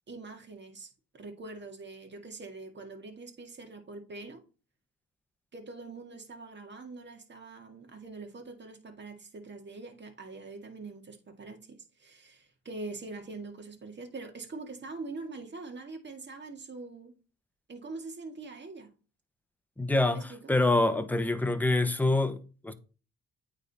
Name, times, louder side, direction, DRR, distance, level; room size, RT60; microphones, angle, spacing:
voice 1, 0.1-4.4 5.5-17.1 17.7-18.9 20.1-20.5, right 3 dB, 35° right, 2.1 m, -44 dB
voice 2, 19.8-22.7, left 2 dB, 5° left, 0.9 m, -26 dB
9.0 x 3.7 x 4.2 m
cardioid pair, 90°, 30 cm